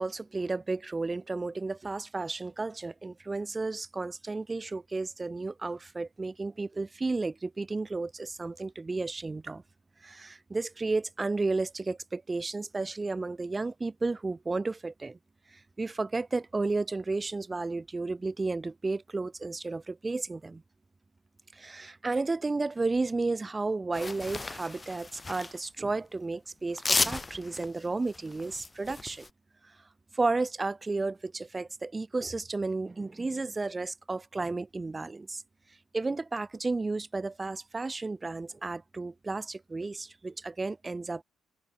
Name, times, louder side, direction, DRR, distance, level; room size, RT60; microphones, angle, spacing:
voice 1, 0.0-9.6 10.0-15.2 15.5-20.6 21.5-29.3 30.1-35.4 35.9-41.2, right 3 dB, 20° right, 2.2 m, -33 dB
sound 1, 23.9-25.6 26.7-29.3, left 3 dB, 20° left, 3.5 m, -33 dB
open air
cardioid pair, 110°, 0 cm